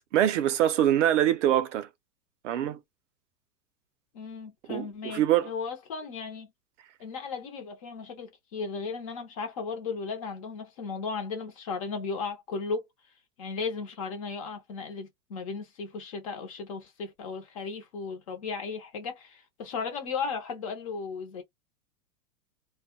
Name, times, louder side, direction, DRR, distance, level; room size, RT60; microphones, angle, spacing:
voice 1, 0.1-1.9 2.4-2.8 4.7-5.5, right 11 dB, 50° right, 0.5 m, -24 dB
voice 2, 4.1-6.5 7.0-12.8 13.4-21.4, left 5 dB, 25° left, 0.4 m, -35 dB
2.1 x 2.1 x 2.8 m
hypercardioid pair, 145°, 47 cm